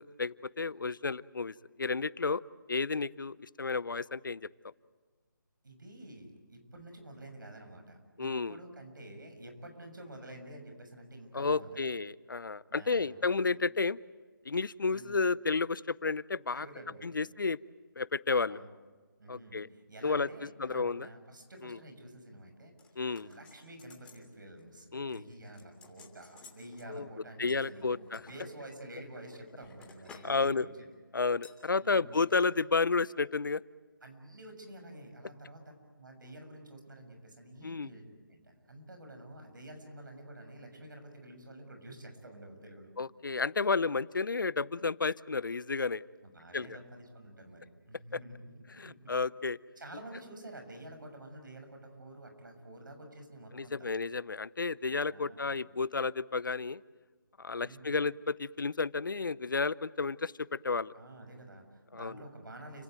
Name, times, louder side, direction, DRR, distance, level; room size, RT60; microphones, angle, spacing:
voice 1, 0.0-2.4 2.7-4.4 8.2-8.6 11.3-14.0 14.5-16.7 17.0-17.6 18.0-18.6 19.3-19.7 20.0-21.1 21.6-21.8 23.0-23.3 24.9-25.2 26.9-27.1 27.4-28.2 30.2-30.7 31.1-33.6 37.6-37.9 43.0-46.0 46.5-46.7 48.8-49.6 53.5-56.8 57.4-60.9 61.9-62.2, left 4 dB, 70° left, 20 dB, 0.7 m, -32 dB
voice 2, 5.6-11.9 12.7-13.2 13.5-13.6 14.9-15.1 16.5-17.2 18.5-18.7 19.2-22.7 23.2-30.9 31.8-32.2 34.0-35.6 35.9-42.9 46.2-49.1 49.8-53.9 55.1-55.6 57.6-58.0 60.9-62.8, right 1 dB, 65° right, 5 dB, 6.9 m, -49 dB
sound 1, 22.8-24.3 24.6-24.8 25.1-26.9 27.5-28.4 29.0-30.4 30.7-30.9 31.4-31.6 32.2-32.5 32.7-32.8, left 4 dB, 10° left, 3.2 m, -56 dB
30.0 x 16.5 x 9.4 m, 1.4 s
figure-of-eight pair, 155°, 11 cm